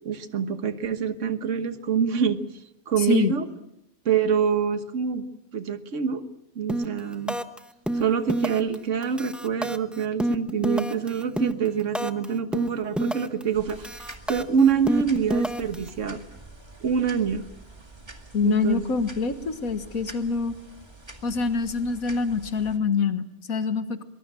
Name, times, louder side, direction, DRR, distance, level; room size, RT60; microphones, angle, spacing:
voice 1, 0.0-2.4 2.9-3.5 4.0-5.2 5.5-6.2 6.5-7.4 7.9-13.9 14.3-16.2 16.8-17.4 18.4-18.8, right 7 dB, 60° right, 9 dB, 1.7 m, -25 dB
sound 1, 6.7-7.0 7.3-7.6 7.9-8.8 9.0-12.3 12.5-13.4 13.7-15.9, right 1 dB, ahead, 0.9 m, -28 dB
sound 2, 13.5-22.8, right 2 dB, 20° right, 2.1 m, -46 dB
voice 2, 18.3-20.5 21.2-24.0, left 5 dB, 90° left, 9 dB, 2.0 m, -25 dB
23.5 x 21.5 x 7.6 m, 0.84 s
omnidirectional pair, 1.4 m